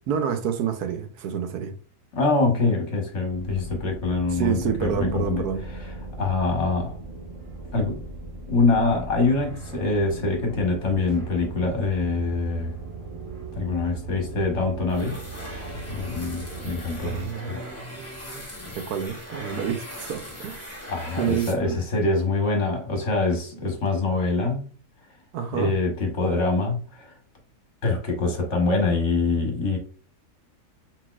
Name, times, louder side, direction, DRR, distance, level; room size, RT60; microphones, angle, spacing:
voice 1, 0.1-1.7 4.3-5.6 17.0-18.4 18.7-20.8 21.2-21.8 25.3-25.7, right 8 dB, 80° right, 1.2 m, -28 dB
voice 2, 2.1-5.4 6.2-7.0 7.7-8.0 8.5-12.8 13.5-15.2 15.7-17.6 20.9-24.7 25.5-27.1 27.8-29.8, left 3 dB, 50° left, 1.2 m, -24 dB
sound 1, 3.2-17.3, right 3 dB, 55° right, 1.5 m, -38 dB
sound 2, 14.9-22.0, left 1 dB, 10° left, 0.8 m, -40 dB
4.4 x 4.0 x 2.4 m
omnidirectional pair, 1.6 m